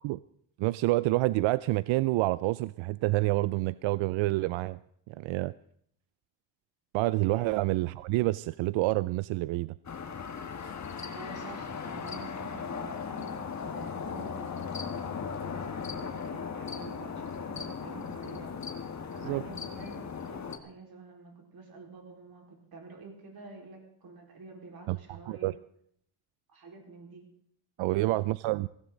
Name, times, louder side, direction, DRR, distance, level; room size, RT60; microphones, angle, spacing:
voice 1, 0.6-4.8 5.1-5.5 6.9-9.8 19.2-19.4 24.9-25.0 25.3-25.5 27.8-28.7, right 19 dB, 70° right, 18 dB, 0.5 m, -28 dB
sound 1, 9.8-20.6, left 6 dB, 35° left, 1.8 m, -37 dB
voice 2, 11.0-18.5 19.1-25.5 26.5-27.3 27.8-28.3, right 3 dB, 50° right, 1 dB, 4.5 m, -48 dB
17.0 x 16.5 x 3.9 m, 0.68 s
cardioid pair, 80°, 48 cm